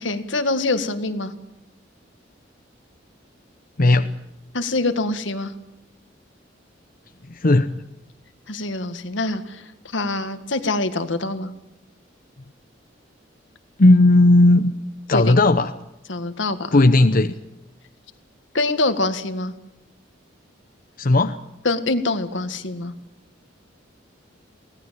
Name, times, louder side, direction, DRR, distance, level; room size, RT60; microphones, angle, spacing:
voice 1, 0.0-1.3 4.5-5.5 8.5-9.6 9.9-11.5 15.1-15.4 16.1-16.7 18.5-19.5 21.7-22.9, left 2 dB, 75° left, 9 dB, 1.9 m, -24 dB
voice 2, 3.8-4.1 7.3-7.7 13.8-14.7 15.1-15.7 16.7-17.3 21.0-21.4, left 2 dB, 50° left, 8 dB, 0.8 m, -15 dB
24.0 x 17.5 x 7.5 m, 0.90 s
head